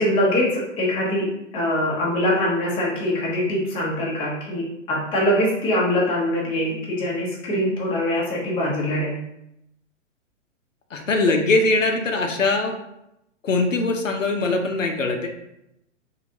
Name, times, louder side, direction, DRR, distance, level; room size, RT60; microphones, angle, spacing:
voice 1, 0.0-9.1, left 1 dB, 15° left, -4 dB, 0.6 m, -23 dB
voice 2, 10.9-12.7 13.4-15.3, left 3 dB, 85° left, 4 dB, 0.6 m, -21 dB
3.1 x 2.7 x 2.5 m, 0.83 s
figure-of-eight pair, 115°, 38 cm